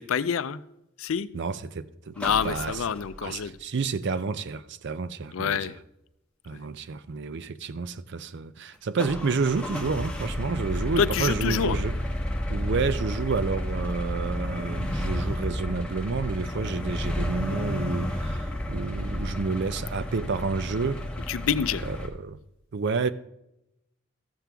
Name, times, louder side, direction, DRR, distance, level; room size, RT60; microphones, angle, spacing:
voice 1, 0.1-0.6 1.0-1.3 2.2-3.5 5.3-5.8 6.5-6.6 11.0-11.8 21.3-21.8, left 7 dB, 70° left, 0.4 m, -27 dB
voice 2, 1.3-2.8 3.2-5.7 6.4-12.0 12.5-21.1 21.9-22.4 22.7-23.1, right 4 dB, 55° right, 0.5 m, -30 dB
sound 1, 2.2-3.5 9.0-22.1, left 1 dB, 5° left, 1.2 m, -31 dB
14.0 x 7.5 x 3.4 m
head